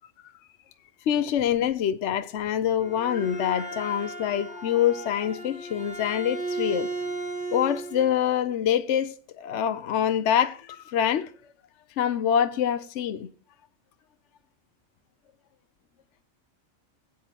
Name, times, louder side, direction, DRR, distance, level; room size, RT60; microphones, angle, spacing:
voice 1, 1.1-6.9 7.5-11.3 12.0-13.3, left 9 dB, 65° left, 0.9 m, -25 dB
Bowed string instrument, 2.6-8.1, right 3 dB, 50° right, 3.8 m, -35 dB
18.0 x 9.0 x 2.8 m
omnidirectional pair, 1.4 m